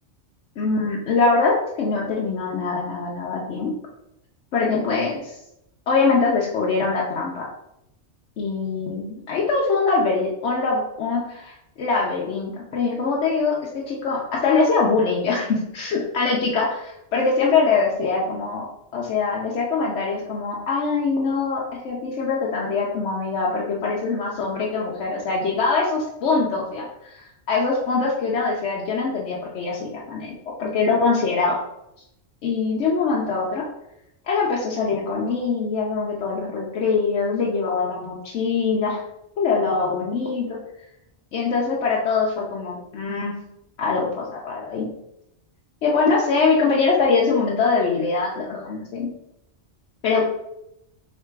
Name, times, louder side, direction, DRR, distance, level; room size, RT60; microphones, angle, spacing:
voice 1, 0.6-3.7 4.5-5.4 5.9-7.5 8.4-18.6 18.9-31.6 32.4-33.6 34.3-39.0 39.4-40.6 41.3-43.3 43.8-44.9 45.8-49.1 50.0-50.2, left 4 dB, 80° left, -3 dB, 1.0 m, -23 dB
3.3 x 2.9 x 4.4 m, 0.83 s
omnidirectional pair, 1.2 m